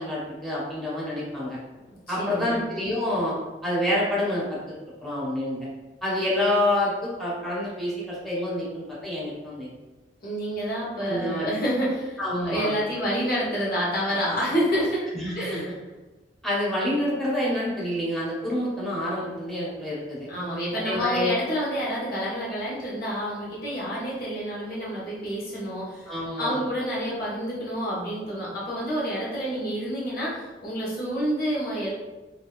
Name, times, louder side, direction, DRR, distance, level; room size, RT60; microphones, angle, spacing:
voice 1, 0.0-1.6 2.1-3.3 3.6-4.8 5.0-5.6 6.0-9.7 11.1-11.5 12.2-12.7 15.2-15.6 16.4-20.3 20.7-21.4 26.1-26.6, left 1 dB, ahead, -7 dB, 0.9 m, -27 dB
voice 2, 2.1-2.6 10.2-15.0 15.3-15.7 20.3-26.1 26.4-31.9, equal, 55° left, -7 dB, 1.1 m, -28 dB
2.7 x 2.6 x 3.0 m, 1.2 s
head